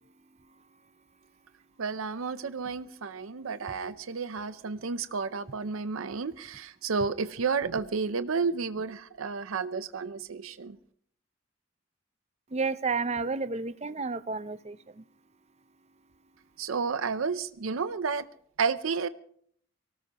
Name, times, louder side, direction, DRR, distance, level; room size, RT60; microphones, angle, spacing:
voice 1, 1.8-10.8 16.6-18.3 18.6-19.1, right 5 dB, 90° right, 0.6 m, -31 dB
voice 2, 12.5-15.0, right 4 dB, 30° right, 0.6 m, -31 dB
24.0 x 18.5 x 3.0 m
head